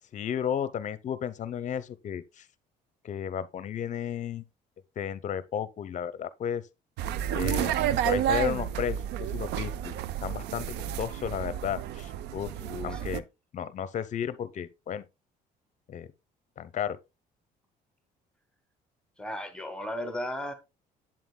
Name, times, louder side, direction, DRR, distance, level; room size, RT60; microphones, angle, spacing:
voice 1, 0.1-2.4 3.0-4.4 5.0-6.6 7.3-9.9 10.2-10.7 11.0-12.5 12.8-13.2 13.5-15.0 15.9-16.1 16.6-17.0, left 9 dB, 45° left, 0.7 m, -33 dB
sound 1, 7.0-13.2, right 10 dB, 80° right, 0.4 m, -31 dB
voice 2, 12.6-13.1 19.2-20.5, left 1 dB, 5° left, 1.2 m, -36 dB
7.9 x 7.6 x 2.2 m
cardioid pair, 110°, 17 cm